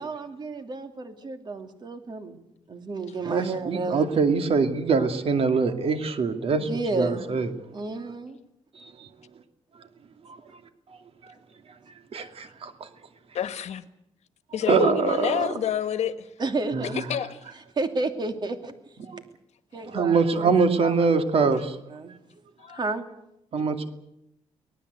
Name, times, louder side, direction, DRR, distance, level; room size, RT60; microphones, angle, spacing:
voice 1, 0.0-4.3 6.6-7.4 7.7-8.4 16.4-17.0 17.7-18.7 19.7-20.5 20.8-20.9 21.4-21.6 21.9-22.1 22.7-23.1, right 3 dB, 40° right, 7 dB, 2.8 m, -31 dB
voice 2, 3.3-6.7 7.0-7.5 8.8-9.1 11.2-11.3 12.1-12.7 14.7-15.5 16.7-17.0 19.1-19.2 19.8-21.7 23.5-23.9, right 5 dB, 55° right, 8 dB, 2.4 m, -24 dB
voice 3, 13.3-13.8 14.5-16.3 16.9-17.4 22.6-22.8, left 10 dB, 70° left, 11 dB, 1.5 m, -28 dB
24.5 x 18.5 x 8.1 m, 0.83 s
cardioid pair, 115°, 12 cm